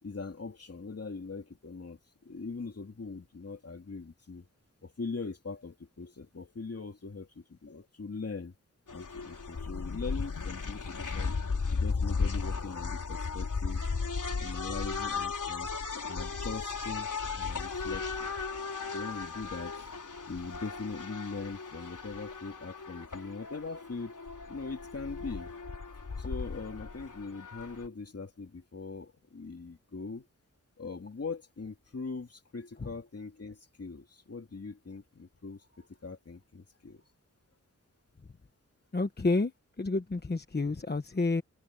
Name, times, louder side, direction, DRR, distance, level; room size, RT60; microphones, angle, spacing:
voice 1, 0.0-4.5 4.8-8.5 8.9-11.3 11.7-13.8 14.4-15.7 16.1-17.1 17.4-18.3 18.9-19.8 20.3-24.2 24.5-25.5 26.2-30.3 30.8-37.0, left 4 dB, 50° left, 2.8 m, -41 dB
sound 1, 8.9-27.9, left 4 dB, 80° left, 4.2 m, -36 dB
voice 2, 38.9-41.4, left 3 dB, 35° left, 1.2 m, -30 dB
wide cardioid pair, 100°, 31 cm